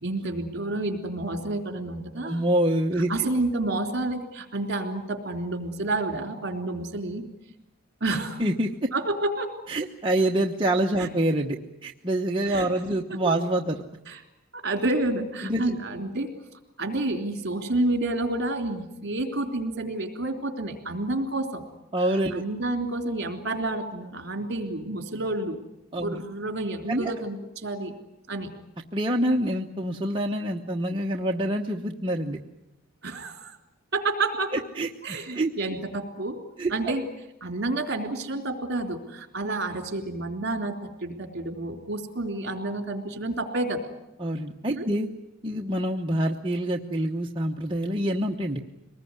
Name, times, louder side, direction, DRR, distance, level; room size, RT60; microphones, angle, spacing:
voice 1, 0.0-2.4 3.1-7.2 8.0-8.4 8.9-9.5 11.0-11.1 12.5-12.7 13.2-13.4 14.1-14.2 14.5-16.3 16.8-21.6 22.0-25.6 26.0-27.9 28.3-28.5 33.0-33.6 33.9-34.5 35.0-36.4 36.7-37.0 37.4-43.9 44.7-44.9, right 2 dB, 50° right, 5 dB, 3.5 m, -29 dB
voice 2, 2.2-3.1 8.4-8.9 9.7-13.8 15.4-15.6 21.9-22.4 25.9-26.2 26.9-27.1 28.9-32.4 34.8-34.9 35.3-35.5 36.6-36.9 44.2-45.1 45.4-48.6, right 1 dB, 25° right, 0 dB, 1.0 m, -26 dB
24.0 x 20.0 x 9.8 m, 0.91 s
head